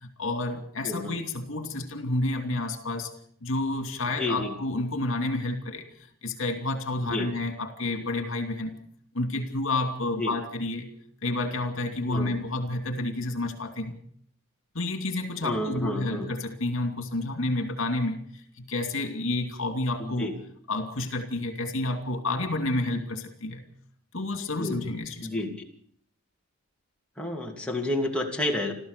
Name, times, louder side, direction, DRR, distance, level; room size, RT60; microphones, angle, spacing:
voice 1, 0.0-3.1 3.4-5.9 6.2-8.8 9.1-10.9 11.2-14.0 14.7-20.3 20.7-23.6 24.1-25.3, left 2 dB, 60° left, 6 dB, 2.8 m, -30 dB
voice 2, 0.8-1.2 4.2-4.5 7.0-7.3 10.2-10.3 12.1-12.4 15.4-16.3 20.0-20.3 24.6-25.6 27.2-28.7, left 1 dB, 5° left, -1 dB, 2.8 m, -30 dB
29.5 x 13.5 x 6.9 m, 0.63 s
head